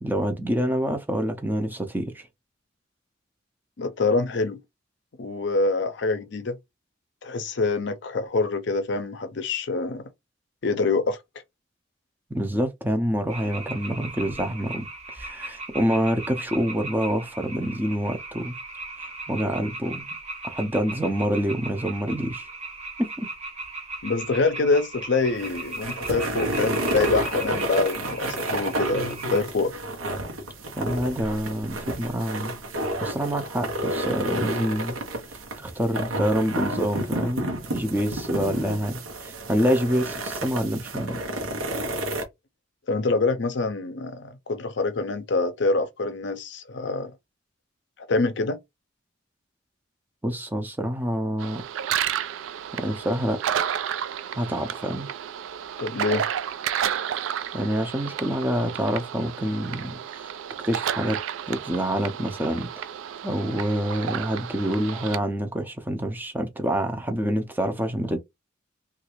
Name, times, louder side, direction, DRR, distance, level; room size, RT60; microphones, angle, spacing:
voice 1, 0.0-2.3 12.3-18.5 19.3-20.1 20.4-22.5 23.0-23.3 30.8-32.5 33.0-35.0 35.3-41.2 50.2-51.6 52.7-53.4 54.3-55.1 57.1-57.3 57.5-60.3 60.6-61.2 61.5-62.9 63.2-68.2, equal, 10° right, 0.5 m, -27 dB
voice 2, 3.8-4.6 5.2-6.6 7.2-10.0 10.6-11.2 24.0-29.7 42.9-47.1 48.1-48.6 55.8-56.3, left 3 dB, 60° left, 0.5 m, -25 dB
sound 1, 13.3-29.4, right 2 dB, 30° right, 0.8 m, -38 dB
sound 2, 25.2-42.2, right 1 dB, 90° right, 0.9 m, -30 dB
sound 3, 51.4-65.2, right 9 dB, 75° right, 0.3 m, -31 dB
3.2 x 2.4 x 3.0 m
head